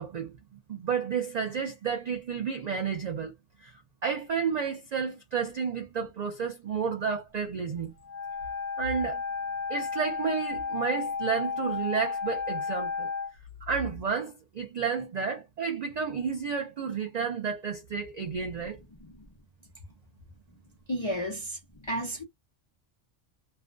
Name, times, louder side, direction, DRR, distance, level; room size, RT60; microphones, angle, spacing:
voice 1, 0.0-3.3 3.6-7.9 8.8-9.2 9.7-13.1 13.6-18.8, right 6 dB, 75° right, 0.3 m, -31 dB
Wind instrument woodwind instrument, 8.0-13.3, left 5 dB, 10° right, 1.0 m, -33 dB
voice 2, 20.9-21.6 21.9-22.2, equal, 40° left, 0.4 m, -31 dB
2.4 x 2.1 x 2.4 m
omnidirectional pair, 1.3 m